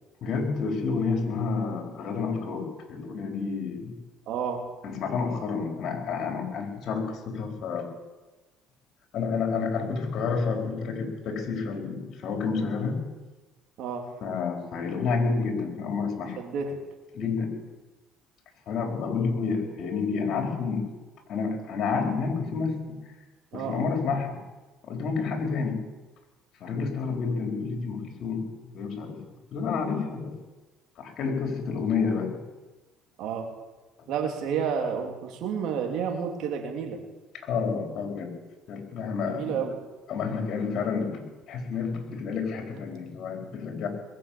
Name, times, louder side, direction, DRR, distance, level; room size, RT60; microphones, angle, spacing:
voice 1, 0.2-3.9 4.8-7.9 9.1-13.0 14.2-16.4 17.1-17.6 18.7-20.9 21.3-23.0 23.5-24.4 24.8-25.8 26.6-29.2 29.5-30.3 31.0-32.3 34.0-34.1 37.4-38.3 38.7-39.6 40.1-43.9, left 5 dB, 60° left, 2 dB, 4.4 m, -29 dB
voice 2, 4.3-4.6 13.8-14.1 16.4-16.8 23.5-23.8 33.2-33.5 34.1-37.0 39.2-39.8, right 7 dB, 70° right, 2 dB, 3.3 m, -30 dB
21.5 x 7.2 x 8.7 m, 1.2 s
supercardioid pair, 70°, 0 cm